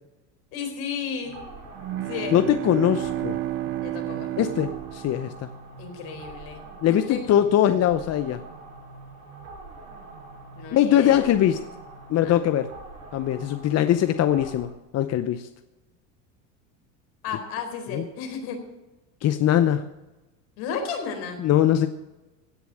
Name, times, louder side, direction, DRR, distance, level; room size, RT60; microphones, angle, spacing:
voice 1, 0.5-1.4 2.1-2.4 3.8-4.3 5.8-6.6 6.9-7.2 10.6-11.2 12.2-12.5 17.2-18.6 20.6-21.4, left 6 dB, 65° left, 4 dB, 4.2 m, -33 dB
sound 1, 1.2-14.6, right 3 dB, 85° right, 6.3 m, -44 dB
sound 2, 1.7-5.8, right 15 dB, 35° right, 0.4 m, -31 dB
voice 2, 2.3-3.4 4.4-5.3 6.8-8.4 10.7-11.6 12.1-12.7 13.1-15.5 17.9-18.0 19.2-19.9 21.4-21.9, left 11 dB, 40° left, 10 dB, 0.8 m, -21 dB
17.0 x 6.9 x 7.8 m, 1.1 s
supercardioid pair, 100°, 39 cm